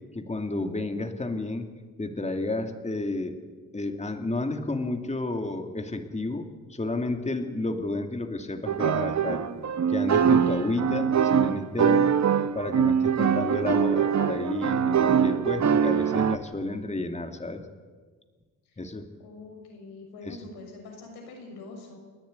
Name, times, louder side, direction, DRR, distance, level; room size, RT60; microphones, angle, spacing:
voice 1, 0.1-1.7 2.0-3.4 3.7-9.4 9.9-12.1 12.5-17.6 18.8-19.1 20.2-20.4, left 2 dB, 20° left, 5 dB, 2.5 m, -31 dB
sound 1, 8.7-16.4, right 7 dB, 45° right, 1.1 m, -23 dB
voice 2, 19.2-22.0, left 3 dB, 80° left, 2 dB, 6.2 m, -44 dB
30.0 x 10.5 x 9.5 m, 1.5 s
supercardioid pair, 65°, 37 cm